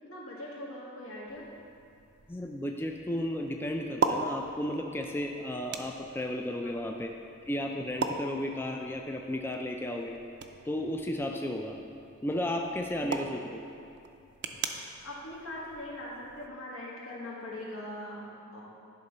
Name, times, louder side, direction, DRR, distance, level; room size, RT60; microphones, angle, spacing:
voice 1, 0.1-1.5 6.6-6.8 15.0-18.6, left 1 dB, 85° left, -6 dB, 2.0 m, -41 dB
sound 1, 1.3-16.5, right 4 dB, 55° right, 0.5 m, -40 dB
voice 2, 2.3-7.1 7.5-10.2 10.7-11.8 12.2-13.6, left 1 dB, 10° left, 2 dB, 0.3 m, -33 dB
11.0 x 3.8 x 5.4 m, 2.5 s
head